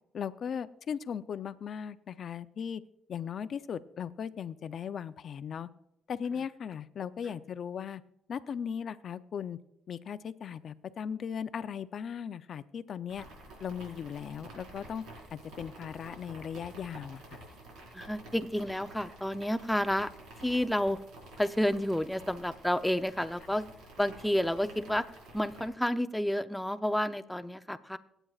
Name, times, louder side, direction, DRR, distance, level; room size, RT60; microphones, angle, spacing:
voice 1, 0.1-2.8 3.1-5.7 6.1-8.0 8.3-9.6 9.9-13.3 13.6-15.0 15.3-17.2, left 7 dB, 60° left, 13 dB, 0.6 m, -38 dB
sound 1, 13.1-25.7, right 2 dB, 90° right, 4.8 m, -50 dB
voice 2, 17.9-20.1 20.4-21.0 21.4-23.6 24.0-25.0 25.3-28.0, left 1 dB, 5° left, 11 dB, 0.6 m, -30 dB
25.5 x 9.0 x 2.4 m, 0.82 s
cardioid pair, 90°, 0 cm